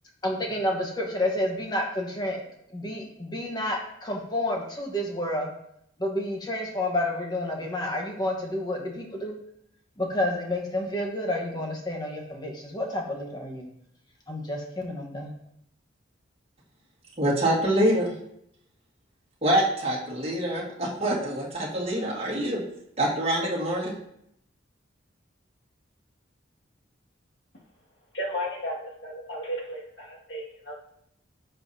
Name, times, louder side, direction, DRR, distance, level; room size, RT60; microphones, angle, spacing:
voice 1, 0.2-2.4 2.7-5.5 6.0-9.3 10.0-13.7 14.3-15.3, left 1 dB, 20° left, 0 dB, 1.1 m, -30 dB
voice 2, 17.2-18.1 19.4-22.6 23.0-23.9, right 1 dB, 30° right, -6 dB, 1.9 m, -25 dB
voice 3, 28.1-30.8, equal, 70° left, -3 dB, 2.0 m, -34 dB
10.5 x 5.5 x 2.8 m, 0.75 s
head